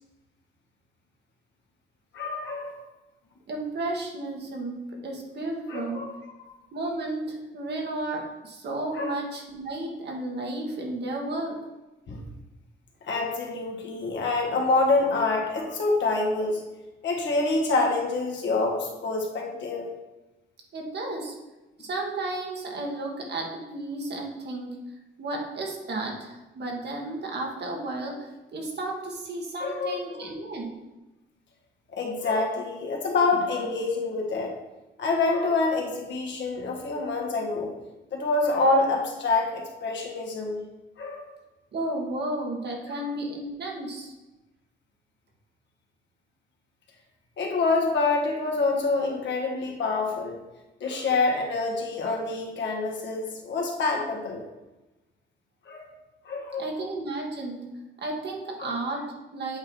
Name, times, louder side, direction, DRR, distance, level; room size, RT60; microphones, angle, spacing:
voice 1, 2.1-2.8 5.7-6.2 6.4-6.6 8.9-9.2 12.1-12.2 13.0-16.6 17.0-19.9 29.6-30.2 31.9-34.5 35.0-37.7 38.1-40.6 41.0-41.2 42.9-43.0 47.4-50.4 50.8-54.4 55.6-56.0 56.2-56.7 58.6-58.7, left 3 dB, 65° left, 0 dB, 1.7 m, -26 dB
voice 2, 3.5-6.1 6.7-11.6 20.7-21.3 21.8-24.8 25.2-30.8 41.7-44.1 56.6-57.7 58.0-59.6, right 2 dB, 60° right, 1 dB, 1.6 m, -33 dB
7.9 x 2.9 x 5.3 m, 1.0 s
cardioid pair, 90°, 20 cm